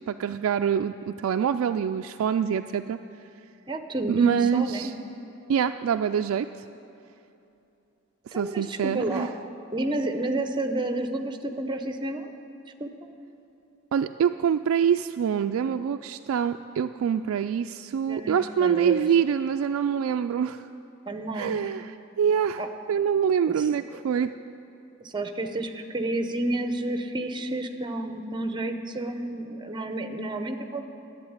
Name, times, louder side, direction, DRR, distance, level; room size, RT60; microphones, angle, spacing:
voice 1, 0.1-3.0 4.1-4.9 5.5-6.5 8.3-9.3 13.9-20.7 21.3-22.6 22.9-24.3, right 8 dB, 85° right, 7 dB, 0.3 m, -25 dB
voice 2, 3.7-4.9 8.3-9.3 9.7-12.3 12.8-13.1 18.1-19.0 21.1-21.7 22.6-22.7 23.6-24.0 25.0-30.9, right 1 dB, 20° right, 7 dB, 0.7 m, -30 dB
11.5 x 8.0 x 9.6 m, 2.8 s
head